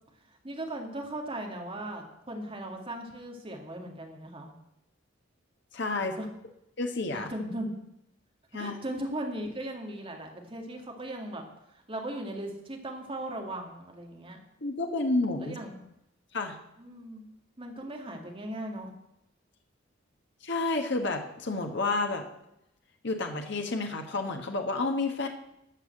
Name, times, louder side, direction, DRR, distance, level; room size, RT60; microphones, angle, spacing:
voice 1, 0.3-4.5 6.0-6.3 7.1-7.7 8.5-11.4 11.7-14.4 15.4-15.9 16.8-17.3 17.6-19.0, right 1 dB, 30° right, 2 dB, 2.2 m, -38 dB
voice 2, 5.7-6.2 6.8-7.3 8.5-8.8 14.6-15.6 16.3-16.6 20.4-22.3 23.0-25.3, left 3 dB, 60° left, 4 dB, 1.3 m, -30 dB
13.5 x 5.7 x 7.7 m, 0.83 s
head